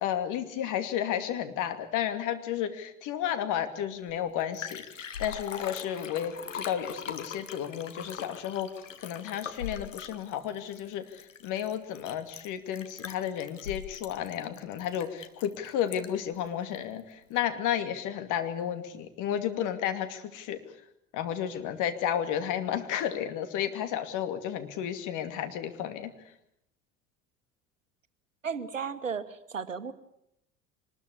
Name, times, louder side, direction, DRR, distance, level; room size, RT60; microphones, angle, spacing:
voice 1, 0.0-8.7 9.0-20.6 21.1-26.1, left 10 dB, 55° left, 9 dB, 2.6 m, -32 dB
Liquid, 4.1-4.2 4.4-16.3 16.8-16.9, left 7 dB, 85° left, 1.5 m, -41 dB
voice 2, 28.4-29.9, right 6 dB, 90° right, 13 dB, 1.2 m, -34 dB
24.5 x 20.0 x 8.5 m, 0.76 s
figure-of-eight pair, 65°, 37 cm